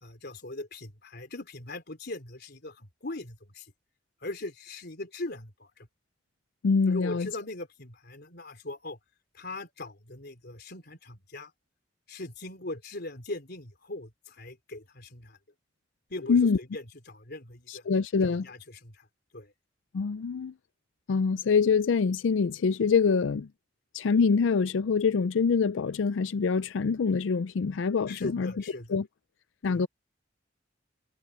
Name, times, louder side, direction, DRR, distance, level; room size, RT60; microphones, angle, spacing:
voice 1, 0.0-3.7 4.2-5.9 6.8-9.0 9.3-11.5 12.1-15.4 16.1-17.9 18.2-19.1 19.3-19.5 28.1-29.0 29.6-29.8, left 2 dB, 60° left, 3.6 m, -40 dB
voice 2, 6.6-7.3 16.3-16.6 17.7-18.5 19.9-20.5 21.1-23.5 23.9-28.5 28.9-29.1 29.6-29.9, left 5 dB, 75° left, 0.4 m, -25 dB
head